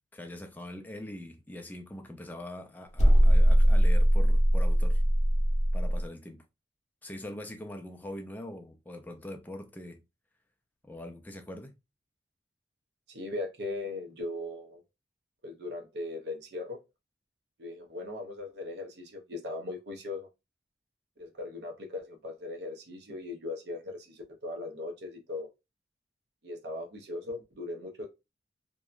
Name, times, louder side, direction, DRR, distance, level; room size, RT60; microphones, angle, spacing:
voice 1, 0.1-5.0 5.7-6.4 7.0-10.0 10.8-11.7, left 1 dB, 10° left, 0.3 m, -43 dB
sound 1, 3.0-6.1, equal, 40° left, 0.6 m, -21 dB
voice 2, 13.1-14.8 15.4-16.8 17.6-20.3 21.2-25.5 26.4-28.1, left 2 dB, 70° right, 0.6 m, -39 dB
2.7 x 2.1 x 2.4 m
head